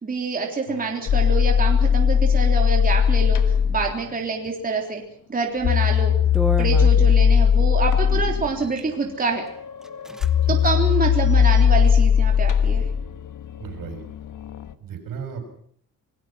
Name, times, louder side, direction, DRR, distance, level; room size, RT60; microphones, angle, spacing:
voice 1, 0.0-3.4 3.7-5.0 5.3-6.1 6.6-9.4 10.5-12.8, right 4 dB, 25° right, 1 dB, 3.6 m, -26 dB
sound 1, 0.7-3.9 5.6-14.7, left 7 dB, 65° left, 1.5 m, -19 dB
sound 2, 5.5-5.8 6.3-7.5 8.4-8.9 9.5-9.6 9.8-10.3 10.6-10.7 11.2-11.9, equal, ahead, 1.1 m, -32 dB
voice 2, 13.6-14.0 14.8-15.4, right 7 dB, 85° right, 6 dB, 6.9 m, -36 dB
28.5 x 20.0 x 5.8 m, 0.62 s
wide cardioid pair, 180°, 33 cm